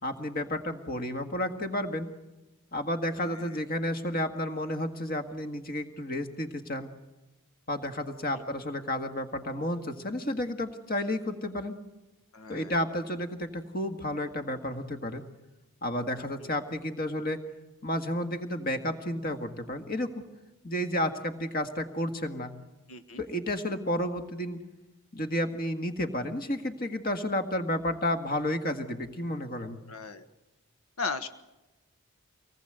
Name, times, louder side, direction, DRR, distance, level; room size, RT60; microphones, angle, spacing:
voice 1, 0.0-2.1 2.7-6.9 7.7-11.8 12.5-15.2 15.8-17.4 17.8-20.3 20.6-22.5 23.2-24.6 25.1-29.8, left 1 dB, 40° left, 8 dB, 1.8 m, -31 dB
voice 2, 3.2-3.6 8.3-8.4 12.3-12.7 16.4-16.5 22.9-23.2 29.9-30.2 31.0-31.3, left 4 dB, 80° left, 9 dB, 1.3 m, -37 dB
25.0 x 19.0 x 8.1 m, 1.0 s
head